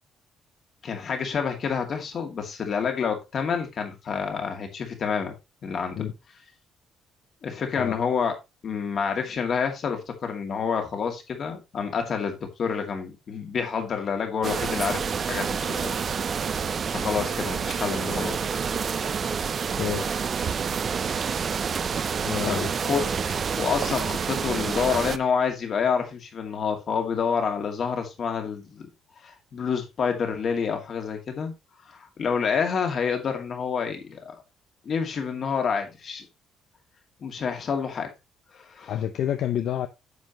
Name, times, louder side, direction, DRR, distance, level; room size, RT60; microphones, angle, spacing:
voice 1, 0.8-5.3 5.6-6.1 7.4-8.3 8.6-15.9 16.9-18.4 22.5-28.9 29.2-31.5 31.9-34.4 34.8-36.3 37.2-38.1 38.5-39.0, left 6 dB, 40° left, 2.4 m, -28 dB
sound 1, 14.4-25.2, right 6 dB, 35° right, 0.6 m, -28 dB
voice 2, 22.3-22.7 38.9-39.9, left 11 dB, 60° left, 0.7 m, -28 dB
9.5 x 7.6 x 3.0 m
cardioid pair, 165°, 0 cm